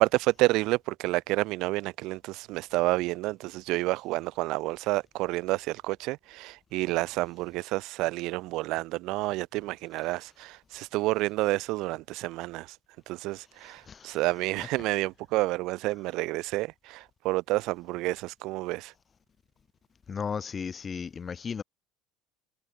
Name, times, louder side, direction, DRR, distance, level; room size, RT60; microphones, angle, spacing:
voice 1, 0.0-12.7 13.1-18.9, right 20 dB, 60° right, 0.3 m, -29 dB
voice 2, 13.9-14.2 20.1-21.6, left 6 dB, 25° left, 1.6 m, -35 dB
cardioid pair, 145°, 0 cm